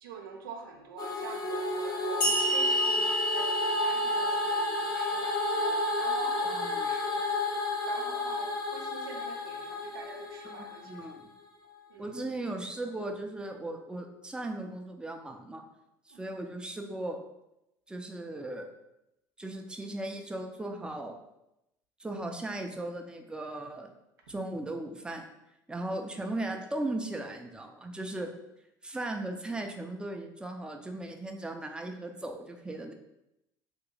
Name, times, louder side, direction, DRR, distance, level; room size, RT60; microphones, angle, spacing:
voice 1, 0.0-7.6 7.8-11.1 11.9-12.1 16.1-16.3, right 5 dB, 85° right, 2 dB, 0.6 m, -45 dB
sound 1, 1.0-11.2, left 1 dB, 35° left, 0.7 m, -31 dB
sound 2, 2.2-5.6, equal, 85° left, 1.4 m, -30 dB
voice 2, 6.4-6.9 10.4-11.2 12.0-15.6 16.1-17.2 17.9-18.7 19.4-21.2 22.0-23.9 24.3-25.3 25.7-28.3 28.8-32.9, right 2 dB, 10° right, 3 dB, 0.5 m, -37 dB
2.9 x 2.7 x 3.9 m, 0.88 s
hypercardioid pair, 75°, 11 cm